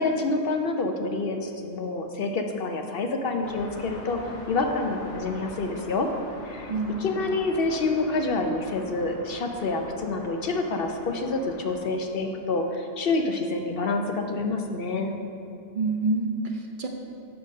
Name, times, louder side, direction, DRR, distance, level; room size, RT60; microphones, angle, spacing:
voice 1, 0.0-4.2 4.5-6.1 6.5-6.7 7.0-15.1, left 3 dB, 60° left, 4 dB, 0.8 m, -27 dB
sound 1, 3.4-11.8, left 1 dB, 85° left, 1.4 m, -44 dB
voice 2, 6.7-7.0 15.7-16.9, right 3 dB, 50° right, 2 dB, 0.7 m, -27 dB
6.9 x 6.0 x 6.3 m, 2.6 s
omnidirectional pair, 1.2 m